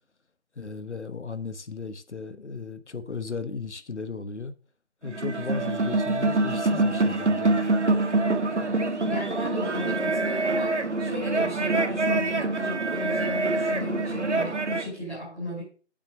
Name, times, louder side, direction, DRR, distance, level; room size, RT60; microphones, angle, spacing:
voice 1, 0.6-4.5 5.0-7.6, left 4 dB, 80° left, 1.2 m, -36 dB
sound 1, 5.0-14.9, right 2 dB, 85° right, 1.6 m, -25 dB
voice 2, 9.1-15.6, left 1 dB, ahead, 2.5 m, -35 dB
8.6 x 6.2 x 6.4 m
figure-of-eight pair, 175°, 34 cm